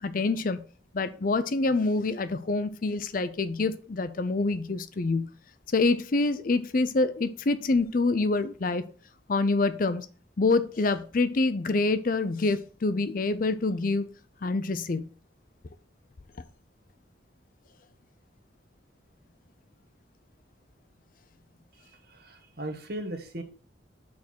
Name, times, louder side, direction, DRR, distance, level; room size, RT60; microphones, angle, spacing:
voice 1, 0.0-0.6 0.9-5.3 5.7-8.9 9.3-10.1 10.4-14.1 14.4-15.1, left 3 dB, 45° left, 0.5 m, -26 dB
voice 2, 21.8-23.4, right 1 dB, 50° right, 1.3 m, -38 dB
5.9 x 4.5 x 6.0 m
head